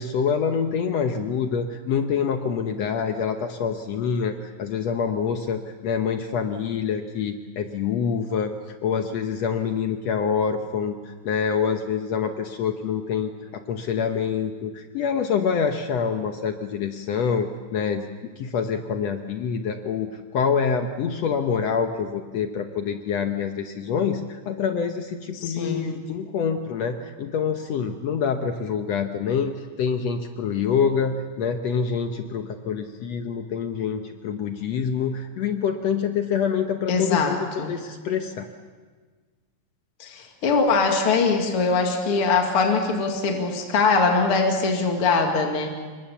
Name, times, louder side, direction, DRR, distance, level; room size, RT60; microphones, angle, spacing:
voice 1, 0.0-18.0 18.4-38.5, left 6 dB, 65° left, 6 dB, 2.1 m, -26 dB
voice 2, 25.3-25.9 36.9-37.7 40.0-45.7, left 4 dB, 50° left, 2 dB, 3.0 m, -22 dB
27.0 x 23.5 x 7.1 m, 1.5 s
omnidirectional pair, 3.3 m